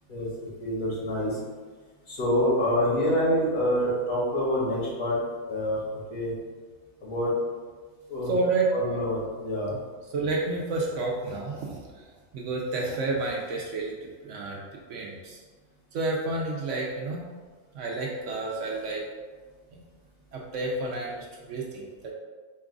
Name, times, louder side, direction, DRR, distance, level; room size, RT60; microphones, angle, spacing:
voice 1, 0.1-1.4 2.1-5.2 5.5-6.3 7.0-7.3 8.1-8.3 8.7-9.7, equal, 65° left, -5 dB, 1.6 m, -26 dB
voice 2, 8.3-9.0 9.7-9.8 10.1-12.1 12.3-14.0 14.2-14.6 14.9-15.4 15.9-17.2 17.7-19.0 19.7-19.8 20.3-22.1, right 3 dB, 65° right, -2 dB, 0.9 m, -30 dB
4.6 x 2.4 x 3.6 m, 1.4 s
omnidirectional pair, 1.5 m